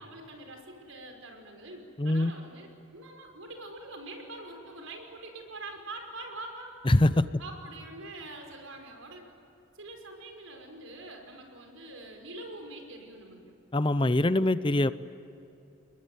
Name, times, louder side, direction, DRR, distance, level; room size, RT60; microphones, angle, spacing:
voice 1, 0.0-6.8 7.4-9.3 9.7-13.4, right 2 dB, 90° right, 3 dB, 5.5 m, -44 dB
voice 2, 2.0-2.3 6.8-7.3 13.7-14.9, left 1 dB, 25° left, 14 dB, 0.6 m, -23 dB
29.0 x 21.5 x 9.4 m, 2.8 s
head